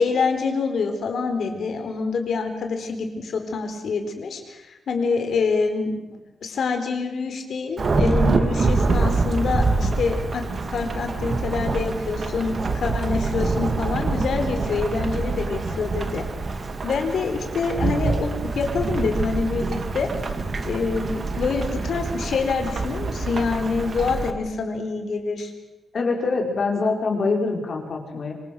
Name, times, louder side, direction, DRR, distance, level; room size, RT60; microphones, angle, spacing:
voice 1, 0.0-6.0 6.4-16.3 16.8-20.1 20.6-25.5, left 4 dB, 65° left, 5 dB, 4.2 m, -26 dB
Thunderstorm / Rain, 7.8-24.3, right 3 dB, 40° right, 2.0 m, -25 dB
voice 2, 25.9-28.3, left 3 dB, 45° left, 2 dB, 5.0 m, -24 dB
26.0 x 25.0 x 6.3 m, 1.0 s
wide cardioid pair, 150°, 0 cm